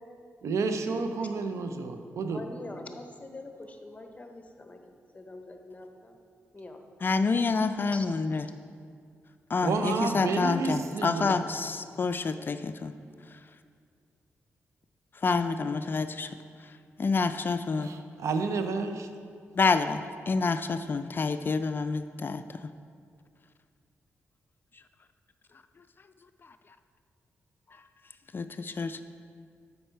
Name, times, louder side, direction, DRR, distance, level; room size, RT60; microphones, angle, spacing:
voice 1, 0.4-2.4 9.6-11.4 17.8-19.1, right 4 dB, 75° right, 7 dB, 0.5 m, -30 dB
voice 2, 2.3-4.8 5.1-6.2 6.5-6.8 7.9-8.1, left 2 dB, 25° left, 5 dB, 0.9 m, -44 dB
voice 3, 7.0-8.5 9.5-12.9 13.3-13.4 15.2-16.3 16.6-16.7 17.0-17.9 19.5-22.7 26.4-26.5 27.7-27.8 28.3-29.0, left 4 dB, 45° left, 10 dB, 0.3 m, -28 dB
7.7 x 5.4 x 4.5 m, 2.2 s
cardioid pair, 55°, 5 cm